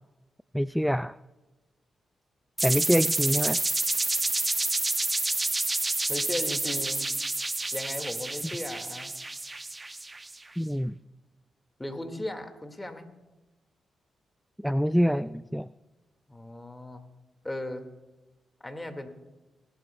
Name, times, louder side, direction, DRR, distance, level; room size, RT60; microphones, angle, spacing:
voice 1, 0.5-1.1 2.6-3.6 10.6-10.9 14.6-15.7, equal, ahead, 16 dB, 0.3 m, -25 dB
sound 1, 2.6-10.4, right 2 dB, 25° right, 0.8 m, -29 dB
voice 2, 6.1-7.1 7.7-9.1 11.8-13.1 16.3-17.0 17.4-17.8 18.6-19.1, left 1 dB, 15° left, 6 dB, 1.9 m, -36 dB
18.5 x 12.0 x 2.3 m, 1.1 s
supercardioid pair, 45°, 0 cm